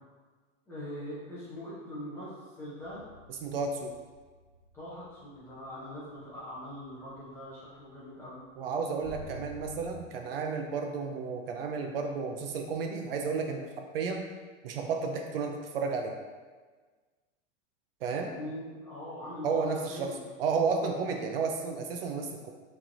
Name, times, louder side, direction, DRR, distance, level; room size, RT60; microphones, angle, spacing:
voice 1, 0.7-3.0 4.7-8.4 18.2-19.5 19.9-20.2 21.0-21.2, left 1 dB, 5° left, -10 dB, 0.5 m, -42 dB
sound 1, 2.8-7.3 7.6-7.8 8.2-8.4 9.0-10.0, equal, 40° left, 0.8 m, -50 dB
voice 2, 3.4-3.9 8.6-13.7 13.9-14.3 14.6-16.2 18.0-18.3 19.4-20.1 20.4-22.5, right 5 dB, 55° right, 3 dB, 0.5 m, -32 dB
5.9 x 3.3 x 2.5 m, 1.4 s
supercardioid pair, 175°, 36 cm